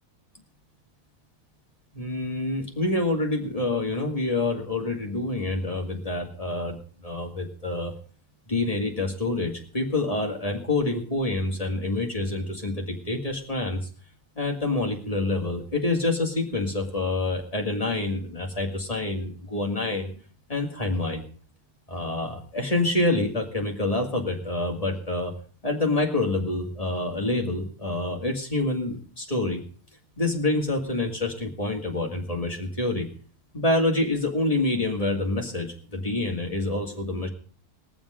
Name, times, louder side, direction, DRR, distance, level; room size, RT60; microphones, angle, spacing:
voice 1, 1.9-7.9 8.5-13.9 14.4-20.1 20.5-21.2 21.9-25.3 25.6-29.6 30.2-33.1 33.5-37.3, left 2 dB, 25° left, 1 dB, 2.3 m, -27 dB
21.0 x 7.1 x 5.0 m, 0.43 s
omnidirectional pair, 1.6 m